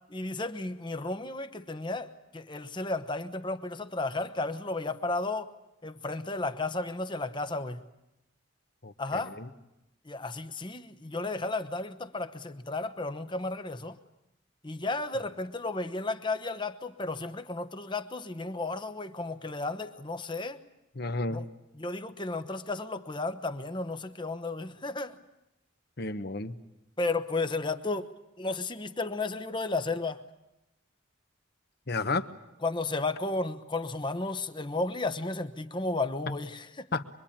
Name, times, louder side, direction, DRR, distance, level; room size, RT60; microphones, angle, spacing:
voice 1, 0.1-5.5 5.8-7.8 9.0-9.4 10.1-14.0 14.6-20.6 21.3-21.4 21.8-25.2 27.0-28.1 28.4-30.2 32.6-36.8, left 2 dB, 25° left, 9 dB, 1.0 m, -33 dB
voice 2, 8.8-9.5 20.9-21.4 26.0-26.6 31.9-32.3 36.9-37.0, left 3 dB, 50° left, 10 dB, 1.1 m, -32 dB
25.0 x 23.5 x 8.8 m, 0.90 s
head